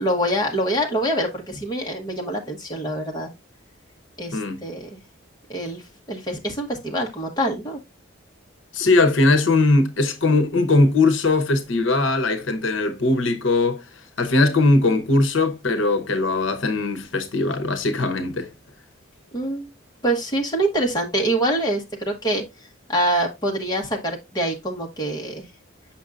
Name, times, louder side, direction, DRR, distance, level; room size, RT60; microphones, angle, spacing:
voice 1, 0.0-3.3 4.2-5.0 5.5-5.8 6.1-7.8 19.3-19.7 20.0-22.4 22.9-25.4, right 1 dB, 20° left, 1.2 m, -25 dB
voice 2, 4.3-4.6 8.7-13.8 14.2-18.5, left 2 dB, 75° left, 0.9 m, -20 dB
7.0 x 5.9 x 2.4 m
head